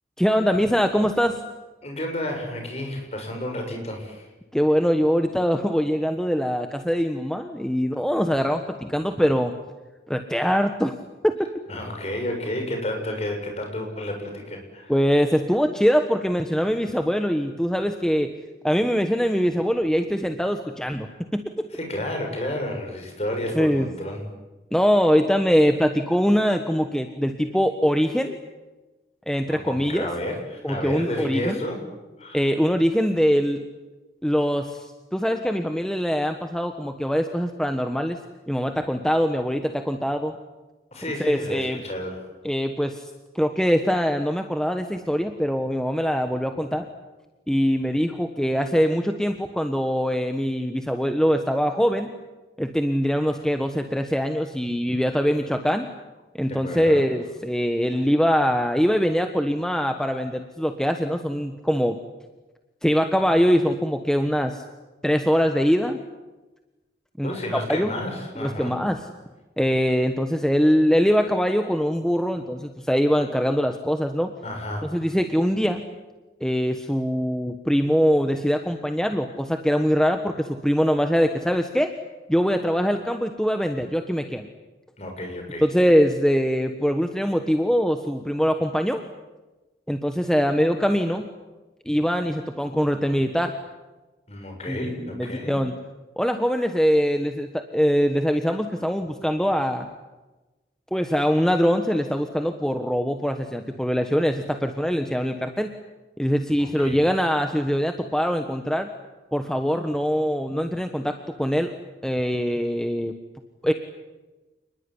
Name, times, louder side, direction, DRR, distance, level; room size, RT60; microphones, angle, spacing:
voice 1, 0.2-1.4 4.5-9.5 10.1-10.9 11.2-11.3 14.9-18.3 18.6-21.1 21.3-21.7 23.5-23.9 24.7-28.4 29.3-30.1 30.6-31.6 32.3-33.6 34.2-38.2 38.5-40.4 41.2-41.8 42.4-43.1 43.3-46.9 47.5-52.1 52.6-55.9 56.4-62.0 62.8-64.6 65.0-66.0 67.2-67.9 68.4-69.1 69.6-74.3 74.9-75.8 76.4-81.9 82.3-84.5 85.6-89.0 89.9-91.2 91.8-93.5 94.7-95.7 96.2-99.9 100.9-105.7 106.2-108.9 109.3-111.7 112.0-113.1 113.6-113.7, equal, 5° left, 6 dB, 1.3 m, -23 dB
voice 2, 1.8-4.3 11.7-15.2 21.7-24.3 29.5-31.8 32.2-32.5 40.9-42.2 56.5-57.0 67.2-68.8 74.4-75.0 85.0-85.6 94.3-95.6 106.6-107.1, left 1 dB, 35° left, 3 dB, 7.1 m, -31 dB
29.0 x 20.5 x 9.9 m, 1.1 s
head